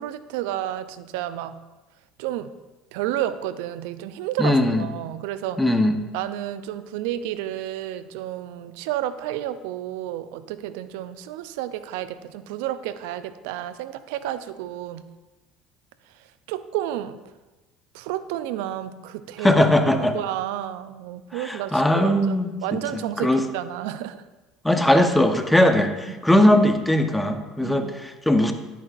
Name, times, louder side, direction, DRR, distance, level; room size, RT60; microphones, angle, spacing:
voice 1, 0.0-1.6 2.2-2.5 2.9-5.8 6.1-15.0 16.1-17.2 17.9-19.6 19.9-24.2 26.1-26.2 27.6-27.8, right 12 dB, 70° right, 13 dB, 0.5 m, -31 dB
voice 2, 4.4-4.8 5.6-6.0 19.4-20.1 21.3-22.8 23.2-23.4 24.6-28.5, left 1 dB, 5° left, 6 dB, 1.0 m, -19 dB
10.5 x 9.1 x 2.5 m, 1.1 s
hypercardioid pair, 65°, 0 cm